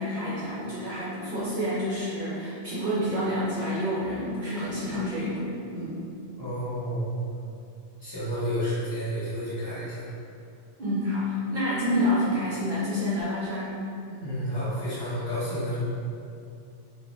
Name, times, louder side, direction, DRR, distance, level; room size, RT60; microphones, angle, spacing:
voice 1, 0.0-6.1 10.8-13.7, left 1 dB, 55° right, -9 dB, 0.6 m, -28 dB
voice 2, 6.4-7.0 8.0-10.1 14.0-15.8, equal, 20° left, -12 dB, 0.9 m, -31 dB
2.3 x 2.1 x 3.0 m, 2.5 s
omnidirectional pair, 1.2 m